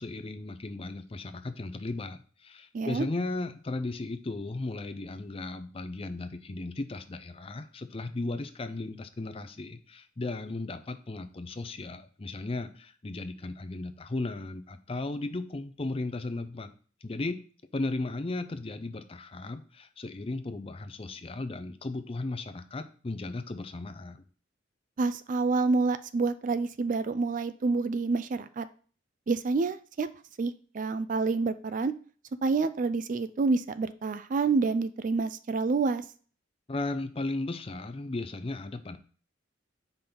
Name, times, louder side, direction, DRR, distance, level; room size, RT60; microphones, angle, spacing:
voice 1, 0.0-16.7 17.0-17.4 17.7-24.2 36.7-39.0, left 2 dB, 30° left, 10 dB, 0.5 m, -36 dB
voice 2, 2.7-3.1 25.0-28.7 29.3-30.1 30.4-31.9 32.4-36.1, right 4 dB, 40° right, 12 dB, 0.3 m, -28 dB
5.2 x 3.9 x 5.8 m, 0.41 s
head